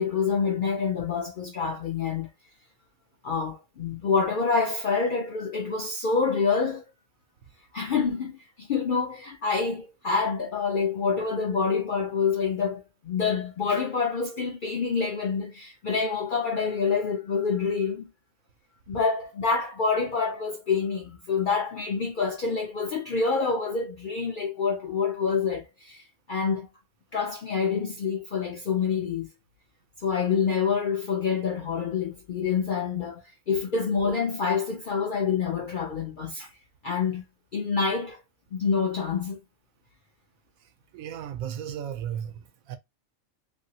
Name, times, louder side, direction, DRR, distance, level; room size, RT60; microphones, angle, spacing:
voice 1, 0.0-2.3 3.2-6.8 7.7-18.1 18.9-26.0 26.3-26.7 27.1-29.3 30.0-36.5 36.8-37.2 37.5-38.2 38.5-39.4, left 5 dB, 65° left, 0.5 m, -27 dB
voice 2, 40.9-42.8, right 9 dB, 90° right, 1.0 m, -35 dB
2.8 x 2.6 x 2.7 m
omnidirectional pair, 1.4 m